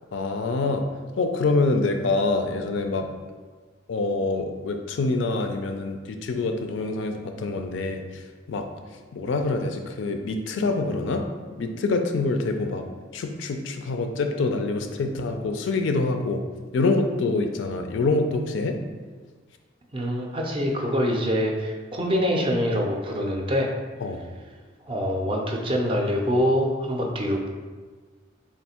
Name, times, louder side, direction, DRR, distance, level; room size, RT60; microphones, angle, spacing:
voice 1, 0.1-0.8 1.2-3.1 3.9-8.2 8.5-8.6 9.1-11.2 11.6-12.8 13.1-16.4 16.7-18.8 24.0-24.2, left 3 dB, 65° left, 5 dB, 0.4 m, -25 dB
voice 2, 19.9-23.7 24.9-27.5, equal, 25° right, 1 dB, 0.4 m, -25 dB
3.4 x 2.5 x 4.2 m, 1.4 s
head